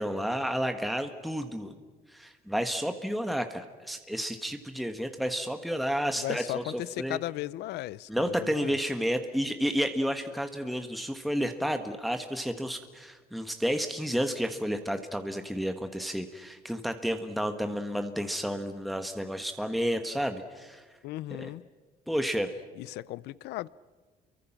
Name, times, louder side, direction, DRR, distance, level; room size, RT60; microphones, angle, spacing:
voice 1, 0.0-1.8 2.1-7.2 8.1-20.8 21.3-21.5 22.1-22.5, equal, ahead, 1.5 m, -31 dB
voice 2, 6.2-8.8 21.0-21.6 22.8-23.7, left 16 dB, 80° left, 0.6 m, -36 dB
29.0 x 23.5 x 6.0 m
cardioid pair, 110°, 17 cm